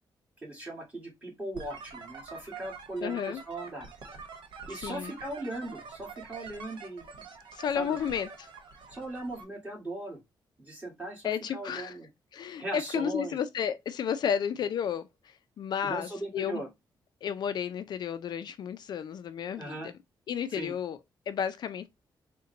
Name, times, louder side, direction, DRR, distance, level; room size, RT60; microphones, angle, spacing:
voice 1, 0.4-3.9 4.7-7.3 7.8-8.0 8.9-10.2 10.6-12.1 12.6-13.4 15.8-16.7 19.6-19.9 20.5-20.7, right 2 dB, 15° right, 1.9 m, -38 dB
sound 1, 1.5-9.4, right 5 dB, 80° right, 1.0 m, -46 dB
voice 2, 3.0-3.4 4.7-5.1 7.5-8.5 11.2-12.0 12.3-16.6 17.2-19.9 20.3-21.0 21.3-21.9, left 8 dB, 60° left, 0.3 m, -32 dB
3.8 x 2.2 x 3.8 m
cardioid pair, 130°, 8 cm